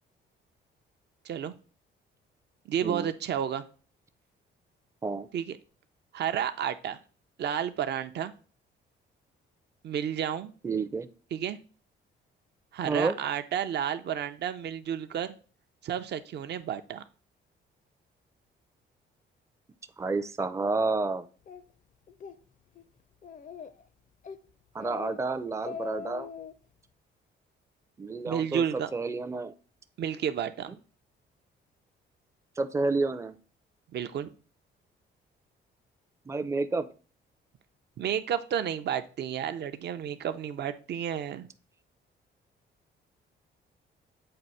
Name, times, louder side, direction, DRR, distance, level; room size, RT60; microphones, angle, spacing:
voice 1, 1.2-1.5 2.7-3.6 5.3-5.6 6.1-7.0 7.4-8.3 9.8-10.5 11.3-11.6 12.7-15.3 15.8-17.0 28.3-28.9 30.0-30.7 33.9-34.3 38.0-41.5, right 9 dB, 60° right, 9 dB, 0.6 m, -31 dB
voice 2, 10.6-11.1 12.8-13.2 20.0-21.3 24.7-26.3 28.0-29.5 30.7-30.8 32.6-33.4 36.3-36.9, right 3 dB, 15° right, 9 dB, 0.5 m, -30 dB
Speech, 21.5-21.6 22.1-22.4 22.7-22.8 23.2-23.8 24.2-24.4 24.8-25.2 25.5-26.5, left 6 dB, 40° left, 0.5 m, -41 dB
7.6 x 2.5 x 5.5 m, 0.38 s
cardioid pair, 90°, 20 cm